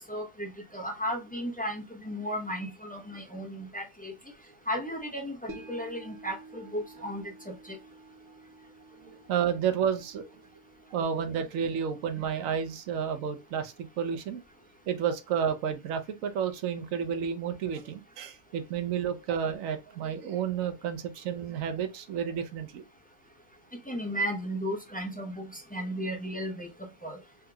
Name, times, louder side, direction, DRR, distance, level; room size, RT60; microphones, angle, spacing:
voice 1, 0.1-4.1 4.7-7.8 23.9-26.7 27.0-27.2, equal, 10° left, 0.5 m, -35 dB
sound 1, 5.5-15.9 16.2-16.3, right 2 dB, 60° right, 1.1 m, -52 dB
voice 2, 9.0-10.2 10.9-14.4 14.9-22.8, right 7 dB, 80° right, 1.1 m, -31 dB
3.6 x 2.9 x 2.2 m
omnidirectional pair, 1.4 m